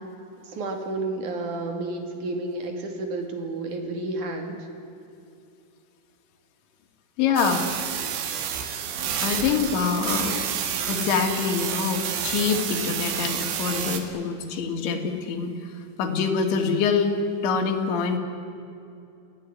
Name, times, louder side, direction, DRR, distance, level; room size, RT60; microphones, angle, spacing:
voice 1, 0.4-4.7, right 2 dB, 45° right, 4 dB, 3.5 m, -31 dB
voice 2, 7.2-7.7 9.2-10.4 10.9-15.7 16.0-17.2 17.4-18.2, left 6 dB, 70° left, 3 dB, 4.5 m, -25 dB
sound 1, 7.4-14.0, right 8 dB, 80° right, 4.5 m, -29 dB
28.5 x 17.5 x 9.7 m, 2.6 s
omnidirectional pair, 5.7 m